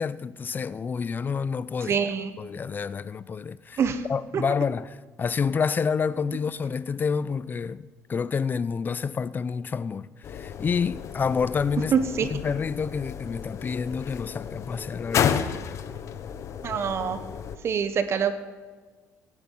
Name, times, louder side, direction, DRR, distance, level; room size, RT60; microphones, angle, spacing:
voice 1, 0.0-2.0 2.4-3.8 4.1-11.9 12.3-15.4, left 6 dB, 30° left, 0.6 m, -28 dB
voice 2, 1.9-2.3 3.8-4.0 4.3-4.4 11.9-12.3 16.6-17.2 17.6-18.3, right 7 dB, 45° right, 1.2 m, -25 dB
sound 1, 10.2-17.6, left 8 dB, 55° left, 1.0 m, -32 dB
17.5 x 11.0 x 5.6 m
cardioid pair, 100°, 6 cm